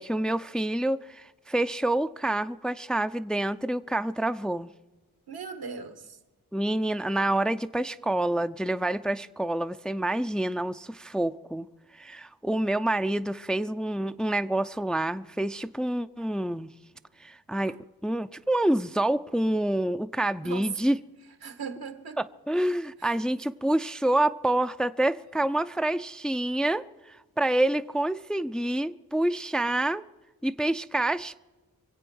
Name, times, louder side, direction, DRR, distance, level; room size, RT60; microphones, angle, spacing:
voice 1, 0.0-4.7 6.5-11.7 11.9-16.7 17.2-17.8 18.0-21.0 22.2-30.0 30.4-31.3, right 1 dB, ahead, 0.5 m, -27 dB
voice 2, 5.3-6.2 17.6-17.7 20.4-20.7 21.4-22.2 23.0-23.1, right 5 dB, 75° right, 1.6 m, -39 dB
23.5 x 8.2 x 6.2 m
cardioid pair, 50°, 37 cm